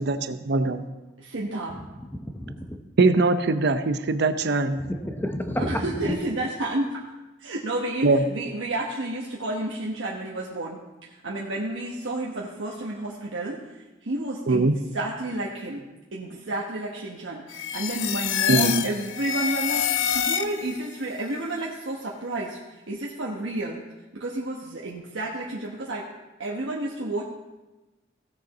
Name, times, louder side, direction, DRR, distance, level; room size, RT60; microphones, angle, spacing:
voice 1, 0.1-0.8 3.0-4.8 8.0-8.2 14.5-14.7 18.5-18.8, right 3 dB, 60° right, 10 dB, 0.7 m, -21 dB
voice 2, 1.2-1.8 5.6-7.0 7.4-13.6 14.0-15.8 16.1-23.8 24.1-26.1 26.4-27.2, right 2 dB, 85° right, -3 dB, 1.2 m, -31 dB
voice 3, 1.7-2.8 4.8-6.2, equal, 10° left, 6 dB, 0.8 m, -31 dB
sound 1, 17.5-20.9, left 9 dB, 85° left, 0.6 m, -27 dB
16.5 x 6.7 x 4.1 m, 1.1 s
head